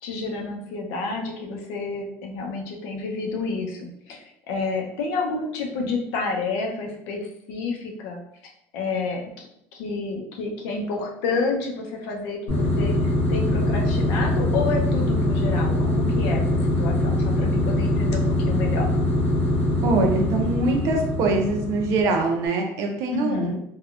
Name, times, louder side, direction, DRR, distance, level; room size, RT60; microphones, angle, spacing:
voice 1, 0.0-7.2 7.5-8.2 8.7-9.5 9.7-18.9 23.1-23.6, left 3 dB, 75° left, 1 dB, 0.7 m, -29 dB
sound 1, 12.5-22.3, left 1 dB, 40° left, 1.3 m, -23 dB
voice 2, 19.8-23.5, right 2 dB, 55° right, 3 dB, 0.6 m, -23 dB
3.4 x 2.3 x 2.4 m, 0.75 s
cardioid pair, 160°, 6 cm